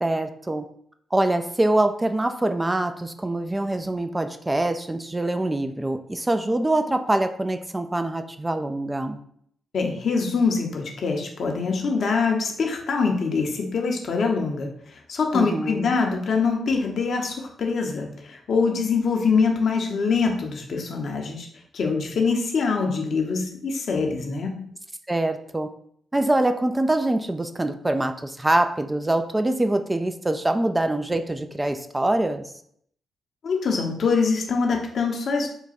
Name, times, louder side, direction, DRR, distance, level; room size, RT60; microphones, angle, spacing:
voice 1, 0.0-0.6 1.1-9.2 15.3-15.9 25.1-25.7 26.1-32.5, right 1 dB, 20° right, 8 dB, 0.4 m, -24 dB
voice 2, 9.7-21.5 21.7-24.7 33.4-35.5, left 4 dB, 60° left, 2 dB, 0.8 m, -24 dB
3.8 x 2.3 x 4.1 m, 0.67 s
hypercardioid pair, 40°, 0 cm